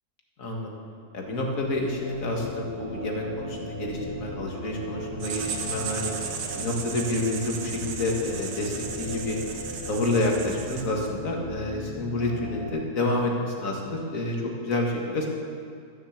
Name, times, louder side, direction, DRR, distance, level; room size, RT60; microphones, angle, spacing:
voice 1, 0.4-0.7 1.1-6.1 6.6-9.4 9.8-15.3, left 1 dB, 55° left, 0 dB, 2.2 m, -28 dB
sound 1, 1.3-12.7, left 2 dB, 40° left, 4.3 m, -39 dB
Writing, 5.2-11.2, right 6 dB, 75° right, 1.5 m, -36 dB
13.5 x 6.9 x 7.4 m, 2.3 s
omnidirectional pair, 1.7 m